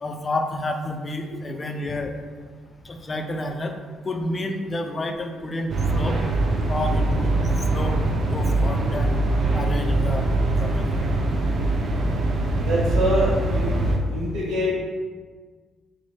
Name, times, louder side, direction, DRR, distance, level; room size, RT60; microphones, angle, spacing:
voice 1, 0.0-2.1 2.9-3.7 4.0-6.2 6.7-7.3 7.7-8.0 8.3-9.2 9.5-10.3 10.6-10.9, left 1 dB, 30° left, 5 dB, 0.4 m, -29 dB
sound 1, 5.7-14.0, right 2 dB, 55° right, 0.5 m, -22 dB
voice 2, 12.6-13.8 14.1-14.7, equal, 75° right, -7 dB, 1.1 m, -24 dB
2.9 x 2.6 x 4.3 m, 1.5 s
cardioid pair, 90°, 0 cm